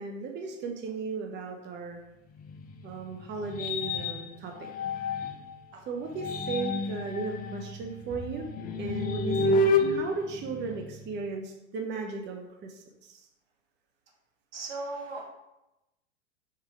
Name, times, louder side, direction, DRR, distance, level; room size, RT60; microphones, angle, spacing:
voice 1, 0.0-2.0 2.8-4.5 5.9-8.5 8.8-13.3, right 4 dB, 30° right, 2 dB, 0.8 m, -36 dB
sound 1, 2.4-5.5 6.0-11.2, left 2 dB, 25° left, 0.5 m, -30 dB
voice 2, 14.5-15.3, right 2 dB, 75° right, -2 dB, 2.0 m, -37 dB
5.6 x 3.5 x 5.0 m, 0.95 s
hypercardioid pair, 100°, 36 cm